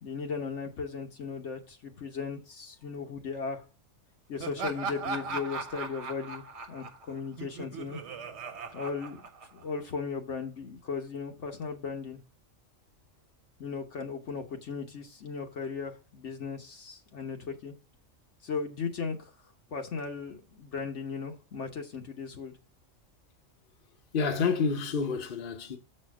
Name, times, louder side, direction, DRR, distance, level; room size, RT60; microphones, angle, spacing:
voice 1, 0.0-3.6 4.3-8.0 8.7-9.2 9.5-12.2 13.6-17.7 18.4-19.3 19.7-22.5, left 5 dB, 65° left, 1.3 m, -37 dB
Laughter, 4.4-9.8, right 4 dB, 60° right, 1.2 m, -38 dB
voice 2, 24.1-25.8, left 5 dB, 45° left, 1.0 m, -28 dB
7.4 x 4.3 x 6.0 m
omnidirectional pair, 1.3 m